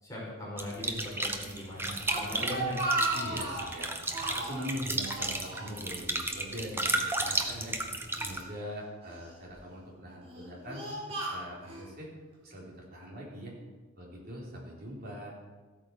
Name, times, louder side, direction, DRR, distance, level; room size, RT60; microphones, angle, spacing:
voice 1, 0.0-2.7, left 1 dB, 15° left, -6 dB, 5.2 m, -39 dB
sound 1, 0.6-8.4, right 2 dB, 10° right, 1.0 m, -33 dB
Speech, 2.1-3.8 4.1-4.7 5.0-6.2 6.4-6.6 7.4-8.4 9.1-9.5 10.2-11.8, right 2 dB, 25° right, 3.7 m, -35 dB
voice 2, 3.1-3.9 4.3-7.7 8.2-12.1 12.4-13.5 14.0-15.3, equal, 45° right, -3 dB, 3.9 m, -42 dB
14.5 x 8.8 x 6.4 m, 1.3 s
head